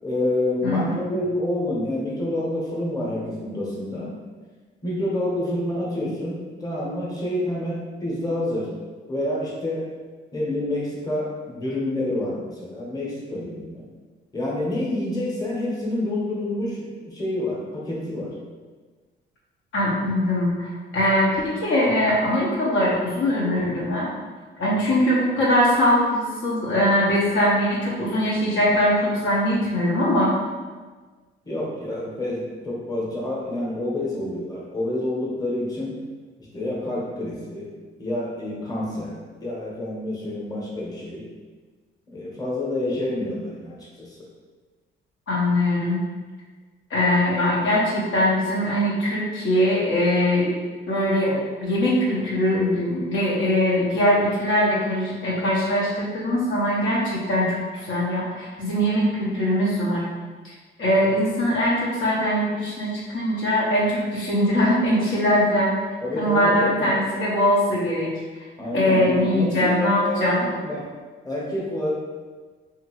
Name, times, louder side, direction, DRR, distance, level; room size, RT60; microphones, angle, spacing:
voice 1, 0.0-4.1 4.8-8.7 9.1-9.9 10.3-13.8 14.3-18.3 31.4-35.9 36.5-37.7 38.0-41.2 42.1-44.2 66.0-67.0 68.6-70.9 71.2-71.9, left 1 dB, 20° left, -5 dB, 0.9 m, -28 dB
voice 2, 0.6-1.0 19.7-24.1 24.6-30.3 45.3-46.0 46.9-50.6 50.9-60.1 60.4-60.5 60.8-65.7 66.2-68.1 68.7-70.5, left 1 dB, 75° left, -5 dB, 0.8 m, -21 dB
2.8 x 2.5 x 2.9 m, 1.4 s
cardioid pair, 90°, 20 cm